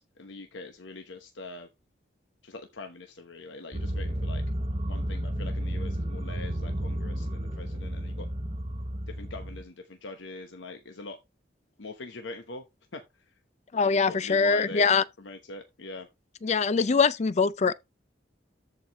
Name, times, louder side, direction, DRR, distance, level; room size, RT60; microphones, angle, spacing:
voice 1, 0.0-1.7 2.4-4.4 4.9-8.3 9.1-11.2 11.8-12.6 12.9-13.0 13.7-14.9 15.2-16.1, left 2 dB, 80° left, 1.0 m, -42 dB
sound 1, 3.7-9.6, right 1 dB, 30° right, 0.9 m, -32 dB
voice 2, 13.7-15.0 16.4-17.7, left 5 dB, 35° left, 0.4 m, -23 dB
13.5 x 4.9 x 3.1 m
head